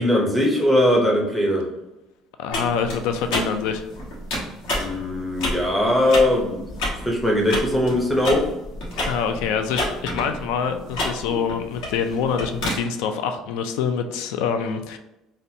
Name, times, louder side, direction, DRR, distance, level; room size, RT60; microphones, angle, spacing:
voice 1, 0.0-1.7 4.7-6.7 7.1-8.4, left 1 dB, 5° left, -2 dB, 0.6 m, -20 dB
voice 2, 2.4-3.9 9.0-15.0, left 6 dB, 90° left, 7 dB, 0.3 m, -25 dB
sound 1, 2.5-12.8, left 1 dB, 70° left, 1.2 m, -30 dB
3.9 x 2.1 x 2.6 m, 0.95 s
cardioid pair, 175°, 0 cm